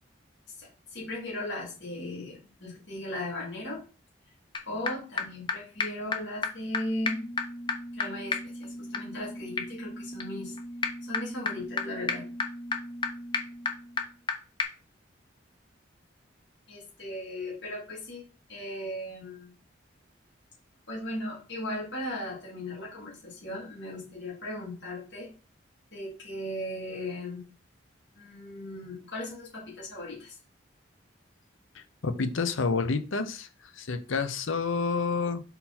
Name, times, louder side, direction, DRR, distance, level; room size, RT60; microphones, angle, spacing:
voice 1, 0.6-3.8 4.6-7.3 7.9-10.5 11.0-12.2 16.7-18.2 18.5-19.5 20.9-25.3 25.9-27.4 28.1-30.4, left 1 dB, 60° left, -5 dB, 3.3 m, -37 dB
sound 1, 4.5-4.6 4.9-5.0 5.2-5.3 5.5-5.6 5.8-5.9 6.1-6.2 6.4-6.5 6.7-6.8 7.0-14.3 14.6-14.7, left 4 dB, 25° left, 0.6 m, -33 dB
voice 2, 31.7-35.4, left 4 dB, 80° left, 11 dB, 0.8 m, -29 dB
5.6 x 3.9 x 4.3 m, 0.34 s
head